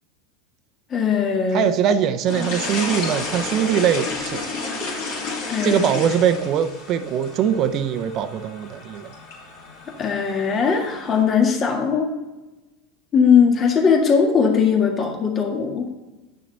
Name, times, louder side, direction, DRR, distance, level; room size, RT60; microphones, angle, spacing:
voice 1, 0.9-1.7 5.5-5.8 10.0-12.1 13.1-15.9, left 6 dB, 35° left, 2 dB, 1.8 m, -19 dB
voice 2, 1.5-4.4 5.6-9.1, right 8 dB, 50° right, 9 dB, 0.7 m, -22 dB
sound 1, 2.3-11.2, left 3 dB, 65° left, 2.9 m, -32 dB
9.8 x 6.2 x 4.0 m, 1.1 s
hypercardioid pair, 95°, 0 cm